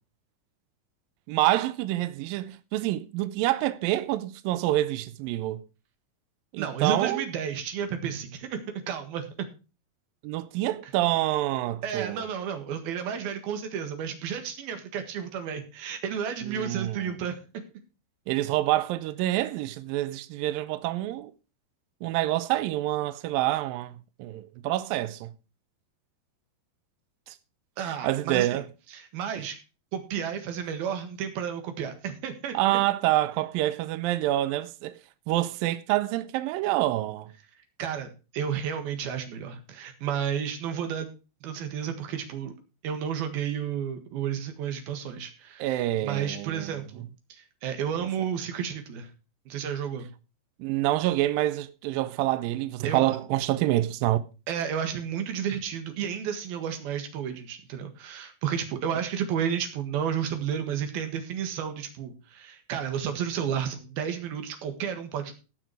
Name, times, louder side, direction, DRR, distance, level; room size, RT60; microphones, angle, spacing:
voice 1, 1.3-5.6 6.5-7.3 10.2-12.2 16.4-17.2 18.3-21.3 22.0-25.3 27.3-27.4 27.8-28.6 32.5-35.0 35.3-37.3 45.6-46.8 50.6-54.2, right 15 dB, 85° right, 2.0 m, -27 dB
voice 2, 6.6-9.5 10.8-10.9 11.8-17.6 27.8-28.6 28.9-29.6 29.9-32.6 37.8-41.1 41.4-42.5 42.8-47.1 47.4-49.1 49.5-50.1 52.8-53.1 54.5-65.3, right 8 dB, 65° right, 3.3 m, -32 dB
16.5 x 6.1 x 4.7 m
omnidirectional pair, 4.9 m